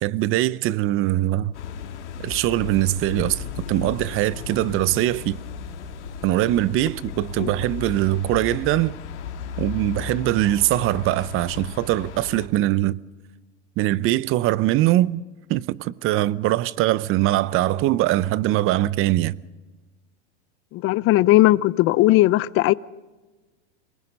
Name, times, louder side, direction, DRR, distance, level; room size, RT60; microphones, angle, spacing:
voice 1, 0.0-1.5 2.2-3.4 3.7-5.4 6.2-8.9 9.6-13.0 13.8-15.2 15.5-19.3, right 15 dB, 40° right, 0.7 m, -22 dB
sound 1, 1.5-12.5, left 7 dB, 80° left, 2.5 m, -35 dB
voice 2, 20.7-22.7, left 17 dB, 40° left, 0.7 m, -17 dB
27.0 x 19.5 x 5.4 m
hypercardioid pair, 110°, 34 cm